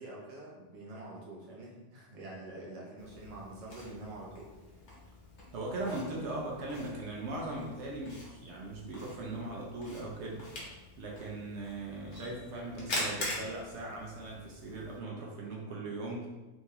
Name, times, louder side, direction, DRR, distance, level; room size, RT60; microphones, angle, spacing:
voice 1, 0.0-4.5, right 2 dB, 35° right, -4 dB, 0.7 m, -46 dB
Camera, 3.0-15.0, left 1 dB, 70° left, 1.3 m, -44 dB
voice 2, 5.5-10.4 11.0-16.3, right 2 dB, 70° right, -2 dB, 1.0 m, -39 dB
3.5 x 2.9 x 2.8 m, 1.1 s
omnidirectional pair, 1.3 m